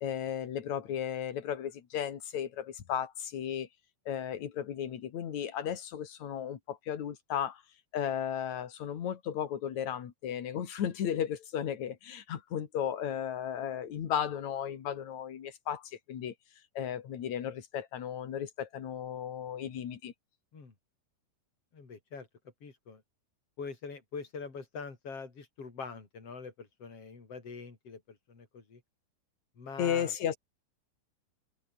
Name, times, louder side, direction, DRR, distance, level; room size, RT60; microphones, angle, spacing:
voice 1, 0.0-3.7 4.1-7.6 7.9-16.3 16.7-20.1 29.8-30.4, left 9 dB, 50° left, 2.6 m, -35 dB
voice 2, 21.7-22.3 22.6-23.0 23.6-28.8 29.6-30.1, left 5 dB, 30° left, 5.1 m, -44 dB
open air
omnidirectional pair, 5.5 m